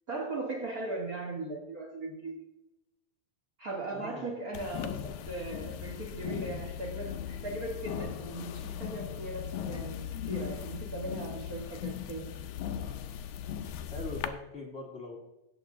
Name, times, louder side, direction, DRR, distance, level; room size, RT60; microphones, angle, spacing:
voice 1, 0.1-2.4 3.6-12.4, right 2 dB, 85° right, -1 dB, 0.8 m, -38 dB
voice 2, 3.9-4.4 13.9-15.2, left 2 dB, 45° left, -2 dB, 0.8 m, -42 dB
sound 1, 4.5-14.3, left 9 dB, 75° left, 1.8 m, -38 dB
18.0 x 7.4 x 3.7 m, 0.93 s
omnidirectional pair, 4.2 m